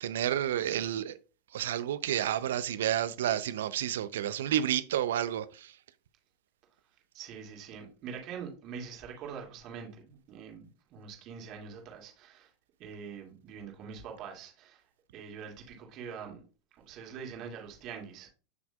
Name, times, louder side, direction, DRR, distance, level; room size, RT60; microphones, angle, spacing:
voice 1, 0.0-1.2 1.5-5.8, right 11 dB, 70° right, 0.5 m, -30 dB
voice 2, 7.1-12.5 12.8-14.8 15.1-16.4 16.7-18.3, right 6 dB, 45° right, 2.3 m, -44 dB
7.5 x 5.9 x 2.3 m
hypercardioid pair, 95°, 0 cm